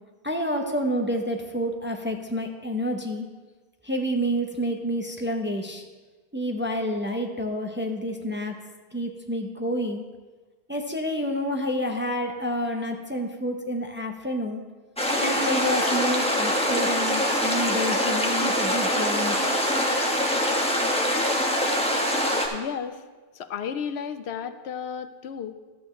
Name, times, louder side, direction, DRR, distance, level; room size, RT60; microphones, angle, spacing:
voice 1, 0.2-3.3 3.8-5.8 6.3-8.6 8.9-10.0 10.7-14.6 15.2-19.6, equal, 15° right, 3 dB, 0.5 m, -29 dB
sound 1, 15.0-22.5, equal, 5° left, 1.0 m, -24 dB
voice 2, 22.5-23.0 23.3-25.5, left 7 dB, 90° left, 10 dB, 0.9 m, -33 dB
12.5 x 8.5 x 3.1 m, 1.3 s
omnidirectional pair, 1.1 m